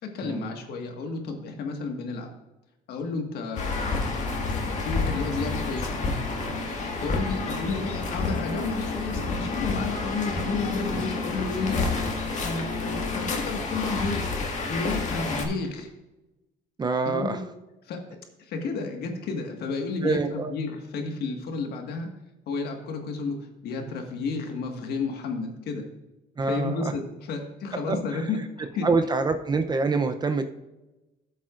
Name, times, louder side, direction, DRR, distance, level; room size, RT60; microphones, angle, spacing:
voice 1, 0.0-2.3 2.9-4.0 4.5-6.0 7.0-12.1 12.4-14.4 14.7-15.9 17.1-17.4 17.8-18.0 18.4-22.1 22.5-25.9 26.5-28.9, left 4 dB, 70° left, 3 dB, 1.7 m, -32 dB
sound 1, 3.6-15.4, left 3 dB, 45° left, 1.9 m, -29 dB
voice 2, 16.8-17.4 20.0-20.5 26.4-26.9 27.9-28.3 28.8-30.5, right 4 dB, 25° right, 7 dB, 0.6 m, -26 dB
14.0 x 7.6 x 2.5 m, 1.0 s
cardioid pair, 110°, 17 cm